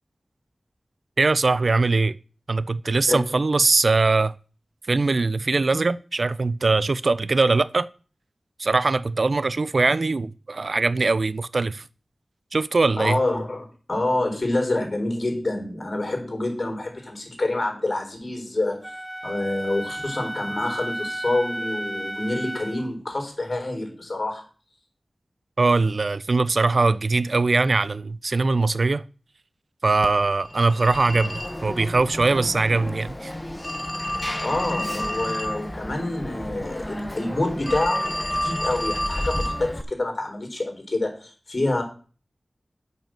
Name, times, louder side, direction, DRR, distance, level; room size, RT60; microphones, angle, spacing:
voice 1, 1.2-2.2 2.5-4.3 4.9-7.9 8.6-11.8 12.5-13.2 25.6-29.1 29.8-33.3, right 3 dB, 65° right, 0.4 m, -21 dB
voice 2, 13.0-18.9 19.2-24.4 34.4-41.8, left 2 dB, 50° left, 3.9 m, -27 dB
Wind instrument woodwind instrument, 18.8-22.9, right 1 dB, 10° right, 0.6 m, -33 dB
Telephone, 30.0-39.8, left 1 dB, 15° left, 1.1 m, -30 dB
9.0 x 5.6 x 7.5 m
wide cardioid pair, 60°, 0 cm